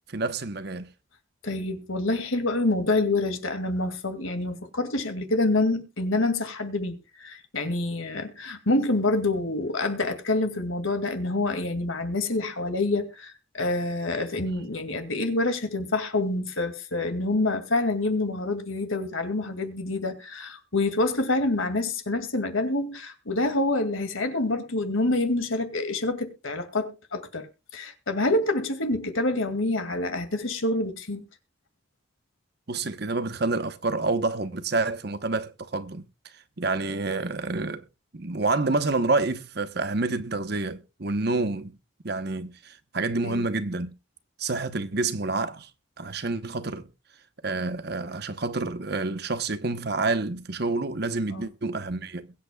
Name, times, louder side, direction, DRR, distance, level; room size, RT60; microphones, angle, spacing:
voice 1, 0.1-0.9 32.7-36.0 36.6-37.8 38.1-41.7 42.0-43.9 44.4-45.7 46.0-46.9 47.4-52.3, right 3 dB, 50° right, 0.9 m, -28 dB
voice 2, 1.4-27.5 27.7-31.2 43.2-43.5 51.3-51.5, left 2 dB, 80° left, 2.2 m, -27 dB
22.0 x 8.1 x 2.3 m
head